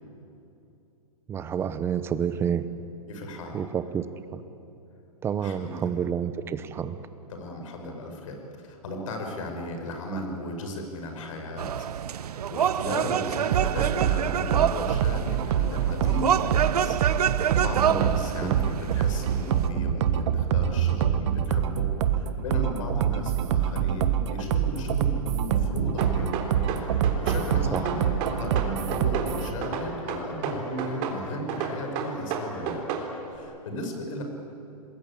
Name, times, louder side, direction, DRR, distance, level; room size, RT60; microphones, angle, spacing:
voice 1, 1.3-2.7 3.5-4.0 4.3-4.4 5.2-7.0 17.9-18.6 27.7-27.8, right 8 dB, 10° right, 12 dB, 0.9 m, -29 dB
voice 2, 3.1-3.6 5.4-5.8 7.3-26.4 26.8-28.0 28.4-32.9 33.3-34.2, left 1 dB, 60° left, 3 dB, 5.9 m, -36 dB
sound 1, 11.6-19.7, right 9 dB, 85° right, 0.8 m, -27 dB
sound 2, 13.5-29.5, right 9 dB, 50° right, 1.5 m, -25 dB
sound 3, 26.0-27.4 27.7-29.3 29.6-31.2 31.5-33.1, right 7 dB, 35° right, 3.6 m, -31 dB
27.0 x 20.5 x 8.7 m, 2.9 s
hypercardioid pair, 155°, 19 cm